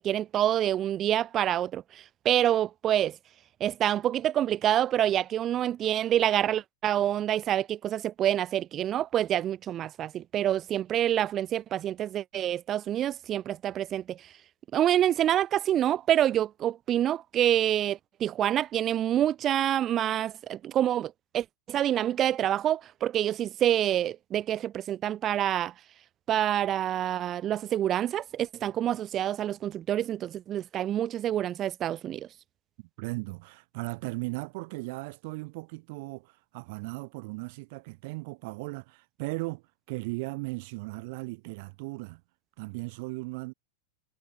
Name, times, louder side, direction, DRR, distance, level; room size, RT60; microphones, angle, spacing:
voice 1, 0.0-1.8 2.2-3.1 3.6-14.2 14.7-25.7 26.3-32.3, right 11 dB, 30° right, 0.5 m, -27 dB
voice 2, 33.0-42.2 42.6-43.5, right 26 dB, 50° right, 6.7 m, -37 dB
figure-of-eight pair, 90°, 0 cm